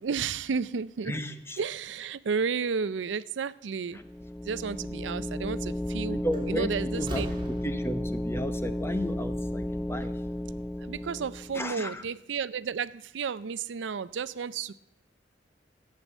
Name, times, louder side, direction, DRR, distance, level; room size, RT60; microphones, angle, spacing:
voice 1, 0.0-1.1 1.6-4.0 4.5-6.2 6.5-7.3 10.9-14.7, right 6 dB, 85° right, 0.5 m, -32 dB
voice 2, 1.1-1.6 6.2-6.7 6.9-7.2 7.6-10.1 11.5-12.0, equal, 15° left, 0.9 m, -33 dB
sound 1, 4.0-11.7, left 1 dB, ahead, 0.4 m, -33 dB
Slam, 5.7-5.9 6.3-8.2, right 1 dB, 30° right, 3.0 m, -40 dB
13.0 x 7.6 x 8.2 m
head